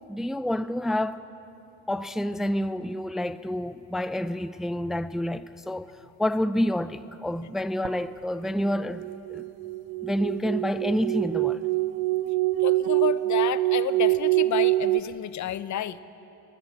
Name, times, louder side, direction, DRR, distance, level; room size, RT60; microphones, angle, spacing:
voice 1, 0.1-1.2 1.9-5.9 6.2-9.4 10.0-11.6, left 1 dB, ahead, 0.5 m, -28 dB
sound 1, 7.8-7.9 8.7-15.0, right 18 dB, 80° right, 0.7 m, -25 dB
voice 2, 12.6-16.0, left 11 dB, 55° left, 0.9 m, -30 dB
20.0 x 17.0 x 8.5 m
supercardioid pair, 75°, 36 cm